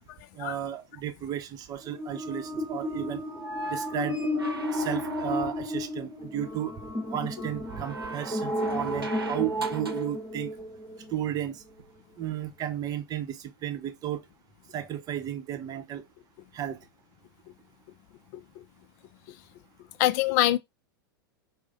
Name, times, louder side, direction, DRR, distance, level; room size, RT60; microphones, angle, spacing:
voice 1, 0.3-3.2 3.7-4.2 4.7-6.7 7.1-10.5 11.1-11.6 12.2-14.2 14.7-16.0 16.5-16.8, right 11 dB, 30° right, 0.8 m, -33 dB
sound 1, 1.8-11.2, left 1 dB, 5° left, 2.5 m, -33 dB
sound 2, 3.3-5.8 7.7-10.1 11.8-11.9, right 2 dB, 85° right, 0.7 m, -37 dB
voice 2, 20.0-20.6, left 14 dB, 50° left, 0.4 m, -23 dB
4.7 x 2.1 x 3.9 m
hypercardioid pair, 95°, 12 cm